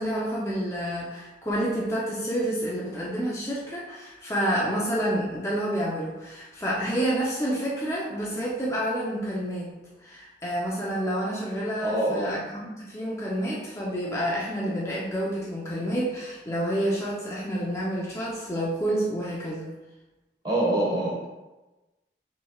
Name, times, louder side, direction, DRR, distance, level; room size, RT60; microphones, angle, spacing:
voice 1, 0.0-9.7 10.0-19.7, equal, 15° left, -6 dB, 0.6 m, -29 dB
voice 2, 11.8-12.4 20.4-21.3, right 1 dB, 25° right, -5 dB, 1.4 m, -25 dB
6.3 x 3.3 x 2.3 m, 1.1 s
head